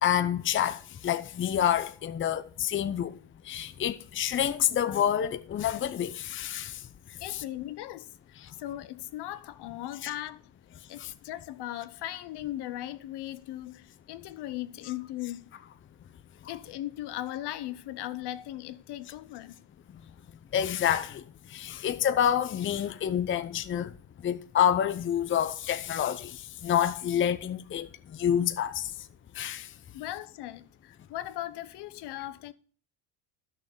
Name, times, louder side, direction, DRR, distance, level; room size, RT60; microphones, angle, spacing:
voice 1, 0.0-3.2 3.4-6.8 7.3-7.4 10.0-10.1 11.0-11.1 20.5-21.2 21.5-23.9 24.2-28.9 29.3-29.7, left 9 dB, 25° left, 0.7 m, -28 dB
voice 2, 7.2-10.4 10.9-15.5 16.5-19.6 29.9-32.5, left 14 dB, 55° left, 0.9 m, -38 dB
11.5 x 6.6 x 5.3 m
cardioid pair, 115°, 47 cm